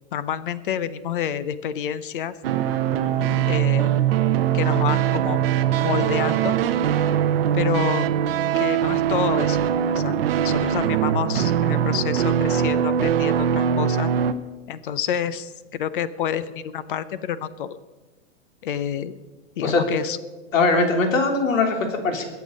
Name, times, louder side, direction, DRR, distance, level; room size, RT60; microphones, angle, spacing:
voice 1, 0.1-2.4 3.5-3.9 4.5-5.4 5.8-6.6 7.5-8.1 8.5-9.7 9.9-10.2 10.4-14.1 14.7-17.8 18.6-19.1 19.6-20.2, left 9 dB, 40° left, 15 dB, 0.7 m, -28 dB
sound 1, 2.4-14.3, right 9 dB, 50° right, 0.9 m, -21 dB
voice 2, 3.0-3.4 19.6-19.8 20.5-22.2, left 3 dB, 80° left, 4 dB, 3.4 m, -21 dB
21.5 x 8.4 x 5.3 m, 1.2 s
hypercardioid pair, 170°, 39 cm